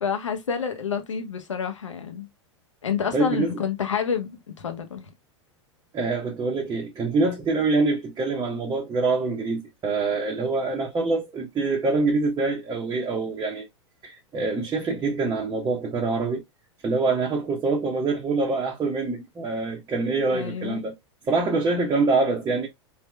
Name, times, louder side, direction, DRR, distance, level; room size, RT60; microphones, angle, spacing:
voice 1, 0.0-2.3 2.8-5.1 20.3-20.8, left 7 dB, 85° left, 1.0 m, -28 dB
voice 2, 3.1-3.6 5.9-13.7 14.0-16.4 16.8-20.9 21.3-22.7, right 3 dB, 25° right, 1.0 m, -25 dB
3.5 x 3.0 x 2.2 m
hypercardioid pair, 95°, 15 cm